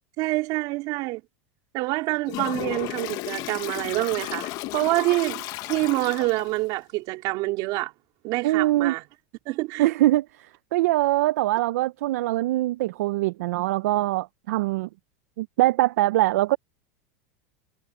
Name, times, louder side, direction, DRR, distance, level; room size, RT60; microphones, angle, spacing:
voice 1, 0.2-1.2 1.7-7.9 8.2-9.0 9.5-9.9, right 21 dB, 50° right, 3.9 m, -26 dB
Toilet flush, 2.3-6.6, left 18 dB, 50° left, 1.1 m, -34 dB
voice 2, 8.4-8.9 9.8-14.9 15.4-16.6, right 16 dB, 75° right, 0.5 m, -23 dB
supercardioid pair, 135°, 8 cm